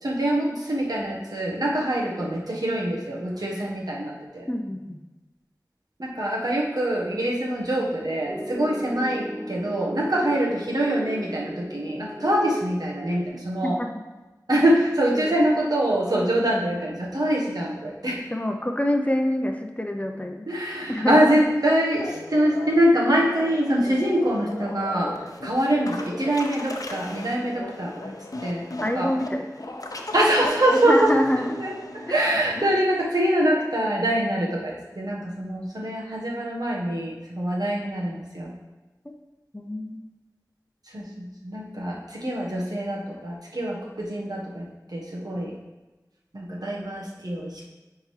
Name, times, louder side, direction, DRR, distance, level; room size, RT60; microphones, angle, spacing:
voice 1, 0.0-4.5 6.0-13.8 14.5-18.2 20.5-28.1 28.4-29.1 30.1-31.2 31.6-38.5 40.9-45.6 46.3-47.6, right 1 dB, 70° right, -3 dB, 1.3 m, -24 dB
voice 2, 4.5-5.0 13.6-13.9 15.1-15.3 18.3-20.4 20.9-21.2 28.0-28.1 28.8-29.5 30.8-31.6 39.0-39.1 39.5-40.1 45.3-45.5, left 1 dB, 20° left, 4 dB, 0.6 m, -26 dB
Piano, 8.3-13.3, equal, 25° right, 0.5 m, -37 dB
sound 1, 22.0-32.8, left 2 dB, 60° left, 0.6 m, -36 dB
9.9 x 3.7 x 3.3 m, 1.1 s
wide cardioid pair, 45°, 7 cm